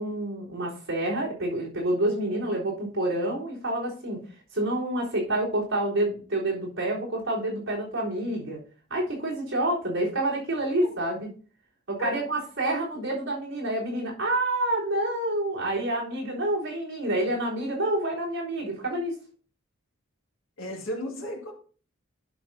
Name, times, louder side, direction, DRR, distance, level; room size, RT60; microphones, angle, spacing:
voice 1, 0.0-4.2 4.5-8.6 8.9-11.3 11.9-19.2, right 1 dB, 70° right, -6 dB, 3.7 m, -28 dB
voice 2, 20.6-21.5, left 1 dB, 75° left, 1 dB, 2.0 m, -33 dB
11.0 x 6.0 x 2.7 m, 0.41 s
head